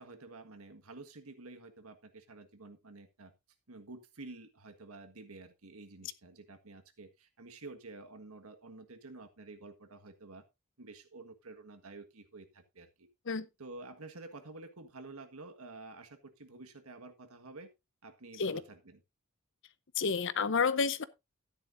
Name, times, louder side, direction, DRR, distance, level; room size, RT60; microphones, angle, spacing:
voice 1, 0.0-3.3 3.7-10.4 10.8-13.1 13.6-17.7 18.0-19.0, right 3 dB, 85° right, 1.6 m, -50 dB
voice 2, 20.0-21.0, left 5 dB, 60° left, 0.7 m, -30 dB
12.0 x 10.0 x 2.6 m
head